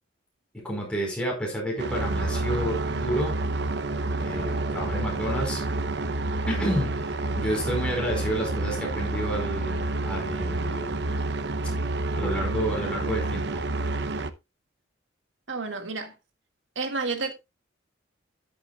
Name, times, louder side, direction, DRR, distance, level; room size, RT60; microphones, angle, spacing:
voice 1, 0.6-3.3 4.2-5.6 6.5-11.0 12.1-13.6, equal, 5° left, 4.7 m, -30 dB
sound 1, 1.8-14.3, right 2 dB, 60° right, 0.8 m, -29 dB
voice 2, 15.5-16.1 16.8-17.3, right 4 dB, 90° right, 2.0 m, -30 dB
13.5 x 7.5 x 2.4 m
head